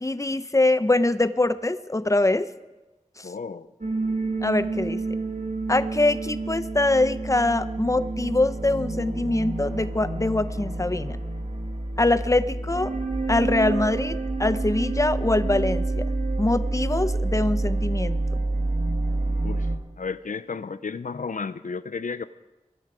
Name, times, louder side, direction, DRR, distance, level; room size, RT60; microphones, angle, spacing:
voice 1, 0.0-2.5 3.2-3.3 4.4-5.0 5.7-11.2 12.0-12.9 13.3-16.1 16.4-18.2, left 2 dB, 25° left, 13 dB, 0.7 m, -23 dB
voice 2, 3.2-3.7 19.4-19.7 20.0-22.3, left 5 dB, 85° left, 14 dB, 0.4 m, -33 dB
sound 1, 3.8-19.8, right 2 dB, 75° right, 1.7 m, -28 dB
23.5 x 11.0 x 4.9 m, 1.1 s
wide cardioid pair, 50°, 13 cm